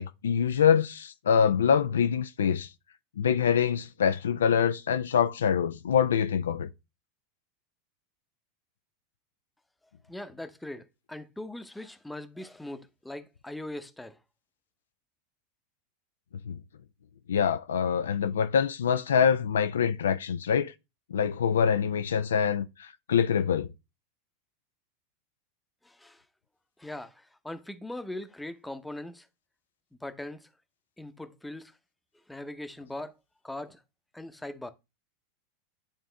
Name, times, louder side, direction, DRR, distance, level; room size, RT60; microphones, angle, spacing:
voice 1, 0.0-2.7 3.2-6.7 16.5-16.6 17.3-20.7 21.1-23.7, left 7 dB, 70° left, 0.4 m, -25 dB
voice 2, 10.1-14.2 25.8-26.2 26.8-29.3 30.0-30.5 31.0-31.7 32.3-33.1 33.4-33.8 34.1-34.7, left 1 dB, 5° left, 0.8 m, -40 dB
10.5 x 3.5 x 3.4 m
figure-of-eight pair, 85°, 0 cm